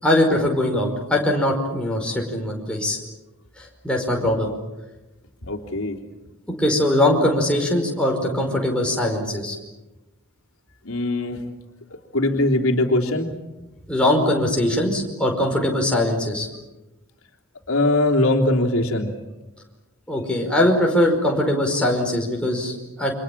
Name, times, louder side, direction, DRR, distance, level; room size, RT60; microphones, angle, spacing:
voice 1, 0.0-3.0 3.6-4.5 6.6-9.6 13.9-16.5 20.1-23.1, left 1 dB, 5° left, -1 dB, 5.2 m, -21 dB
voice 2, 5.4-6.0 10.8-11.5 12.1-13.3 17.7-19.1, left 1 dB, 75° left, 1 dB, 3.3 m, -21 dB
29.5 x 25.5 x 7.5 m, 1.0 s
head